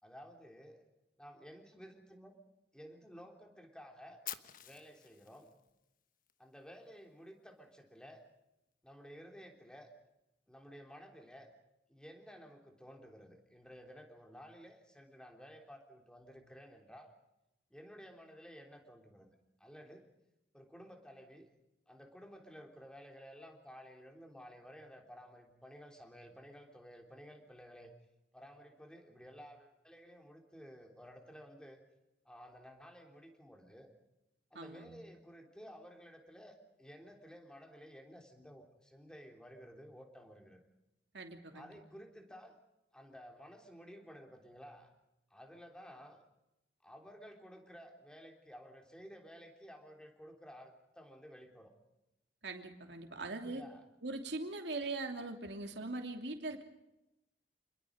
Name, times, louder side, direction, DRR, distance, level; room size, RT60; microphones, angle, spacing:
voice 1, 0.0-0.8 1.2-2.4 2.7-4.2 4.6-5.6 6.4-8.3 8.8-9.9 10.5-11.5 11.9-17.1 17.7-19.3 19.6-20.1 20.5-21.5 21.9-27.9 28.3-31.8 32.3-33.9 34.5-40.6 41.5-42.6 42.9-44.9 45.3-46.2 46.8-51.7 53.4-53.8, equal, 5° left, 3 dB, 3.5 m, -54 dB
Fire, 4.2-6.3, left 11 dB, 50° left, 1.3 m, -48 dB
voice 2, 34.5-35.0 41.1-41.8 52.4-53.6 54.0-56.6, right 2 dB, 70° right, 4 dB, 3.0 m, -41 dB
29.0 x 21.5 x 5.2 m, 0.92 s
head